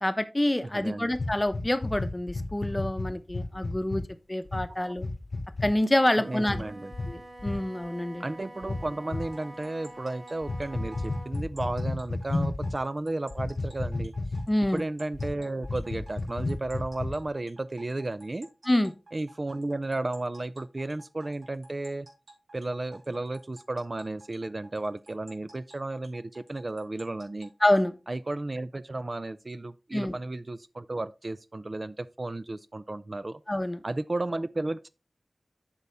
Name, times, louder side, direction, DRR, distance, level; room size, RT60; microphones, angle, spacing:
voice 1, 0.0-4.0 4.3-5.1 5.6-6.6 7.1-8.2 14.5-14.8 18.7-18.9 27.6-27.9 29.9-30.1 33.5-33.8, left 1 dB, 20° left, 0.8 m, -27 dB
voice 2, 0.7-1.2 6.2-6.9 8.2-14.1 14.7-18.5 19.1-22.1 22.5-27.5 28.1-33.4 33.8-34.9, right 2 dB, 40° right, 0.4 m, -33 dB
sound 1, 1.1-4.0 4.5-4.7 5.0-5.7 6.4-6.6 6.9-7.1 7.4-7.6 8.6-9.3 10.4-12.8 13.3-14.7 15.1-15.3 15.6-17.3, left 2 dB, 55° left, 0.9 m, -32 dB
Wind instrument woodwind instrument, 6.0-11.4, right 1 dB, 65° right, 3.2 m, -46 dB
sound 2, 9.2-27.9, right 2 dB, 90° right, 2.7 m, -53 dB
8.2 x 5.5 x 3.4 m
wide cardioid pair, 80°, 0 cm